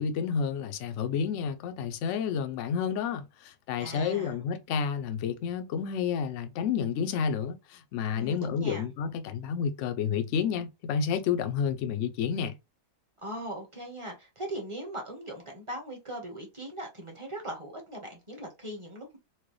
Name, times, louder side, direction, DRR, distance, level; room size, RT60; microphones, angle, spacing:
voice 1, 0.0-12.5, left 7 dB, 65° left, 0.7 m, -30 dB
voice 2, 3.8-4.4 8.1-8.9 13.2-19.2, right 1 dB, 25° right, 0.8 m, -39 dB
4.6 x 2.2 x 3.1 m
omnidirectional pair, 1.8 m